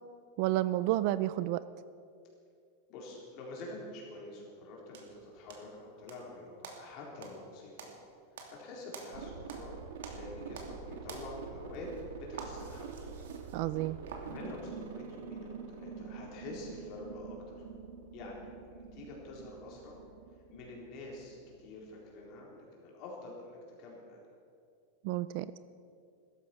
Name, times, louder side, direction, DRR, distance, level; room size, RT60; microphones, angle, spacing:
voice 1, 0.4-1.6 13.5-14.0 25.0-25.5, right 15 dB, 40° right, 15 dB, 0.4 m, -30 dB
voice 2, 2.9-7.9 8.5-9.8 10.1-11.9 12.2-13.1 14.2-17.6 18.1-20.0 20.5-24.2, left 2 dB, 35° left, -2 dB, 4.0 m, -47 dB
sound 1, 4.9-6.3 6.6-9.7 10.0-10.8 11.0-14.3, right 5 dB, 90° right, 2.8 m, -48 dB
sound 2, 9.1-22.4, right 6 dB, 75° right, 2.0 m, -46 dB
16.5 x 14.0 x 6.0 m, 2.3 s
supercardioid pair, 180°, 0 cm